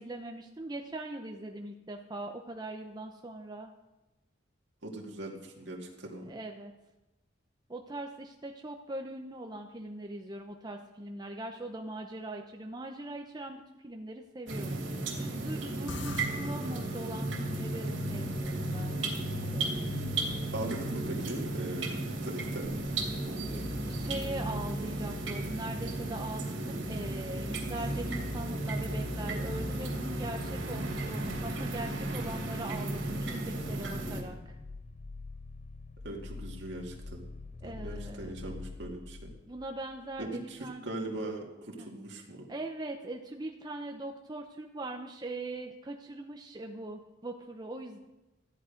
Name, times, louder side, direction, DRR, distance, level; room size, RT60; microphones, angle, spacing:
voice 1, 0.0-3.7 6.3-6.7 7.7-14.8 15.2-19.7 23.5-34.6 37.6-38.4 39.5-40.8 41.8-41.9 42.5-48.0, right 1 dB, 20° right, 3 dB, 0.7 m, -41 dB
voice 2, 4.8-6.2 20.5-22.7 36.0-37.2 37.6-39.3 40.2-42.5, right 1 dB, 70° right, -1 dB, 2.2 m, -40 dB
sound 1, 14.5-34.2, right 2 dB, 85° right, 2.8 m, -35 dB
sound 2, 15.9-26.5, left 2 dB, 70° left, 0.8 m, -43 dB
sound 3, 22.8-40.3 40.6-40.7, left 2 dB, 35° left, 0.5 m, -44 dB
13.5 x 10.5 x 5.1 m, 1.0 s
head